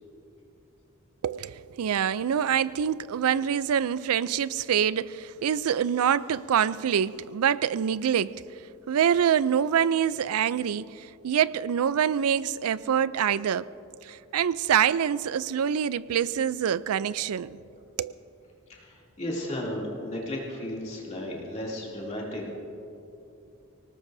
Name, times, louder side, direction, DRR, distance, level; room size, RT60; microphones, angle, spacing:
voice 1, 1.2-8.4 8.9-13.7 14.0-17.6 18.0-18.1, right 8 dB, 90° right, 0.4 m, -25 dB
voice 2, 18.7-22.5, left 1 dB, 30° left, 2.8 m, -34 dB
24.5 x 18.5 x 2.7 m
head